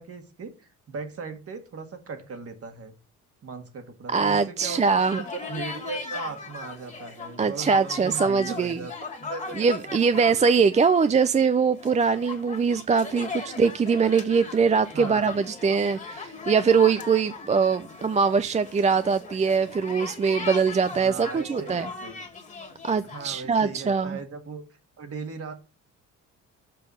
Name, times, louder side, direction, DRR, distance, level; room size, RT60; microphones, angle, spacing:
voice 1, 0.0-2.9 3.4-8.9 9.2-9.6 9.8-10.5 14.9-15.3 20.9-22.2 23.0-24.6 25.0-25.5, right 5 dB, 50° right, 1.9 m, -38 dB
voice 2, 4.1-5.2 7.4-8.8 9.6-21.9 22.8-24.2, right 5 dB, 25° right, 0.4 m, -22 dB
sound 1, 4.6-23.4, left 4 dB, 25° left, 2.0 m, -39 dB
6.9 x 5.2 x 6.2 m
cardioid pair, 90°, 30 cm